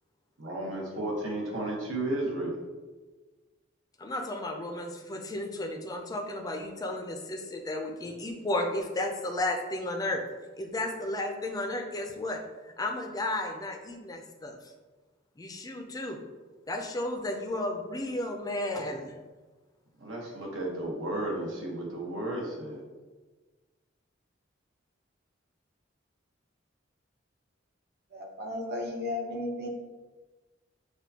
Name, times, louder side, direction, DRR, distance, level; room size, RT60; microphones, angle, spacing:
voice 1, 0.4-2.6 20.0-22.8, right 1 dB, 80° right, -2 dB, 1.0 m, -33 dB
voice 2, 4.0-10.2 10.6-12.4 12.8-14.5 15.4-16.2 16.7-19.1, left 1 dB, 20° left, 3 dB, 0.4 m, -33 dB
voice 3, 28.1-29.7, left 2 dB, 55° right, 1 dB, 0.7 m, -34 dB
6.1 x 2.3 x 2.8 m, 1.3 s
head